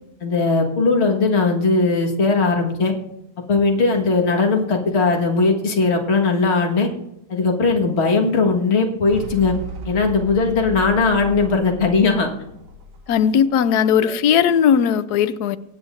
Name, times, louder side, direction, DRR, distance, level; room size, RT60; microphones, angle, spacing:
voice 1, 0.2-2.9 3.5-6.9 7.3-9.5 9.9-12.3, left 4 dB, 45° left, 1.8 m, -18 dB
sound 1, 9.1-13.6, right 1 dB, 60° right, 1.3 m, -35 dB
voice 2, 13.1-15.6, left 8 dB, 85° left, 1.2 m, -17 dB
24.0 x 8.7 x 2.5 m
omnidirectional pair, 1.7 m